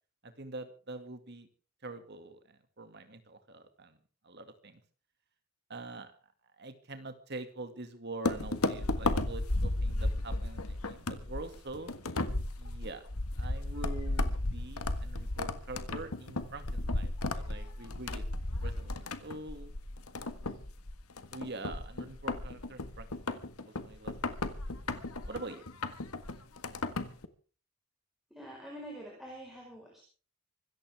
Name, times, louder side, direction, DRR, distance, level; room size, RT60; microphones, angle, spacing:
voice 1, 0.2-1.5 1.8-4.0 4.2-4.8 5.7-6.1 6.6-11.9 12.6-13.0 13.4-18.2 18.6-19.7 21.3-24.4 25.3-25.6, right 2 dB, 50° right, 8 dB, 2.3 m, -45 dB
sound 1, 8.3-27.3, left 2 dB, 90° left, 1.6 m, -34 dB
voice 2, 28.3-30.0, equal, ahead, -2 dB, 4.9 m, -46 dB
25.0 x 14.0 x 3.6 m, 0.39 s
head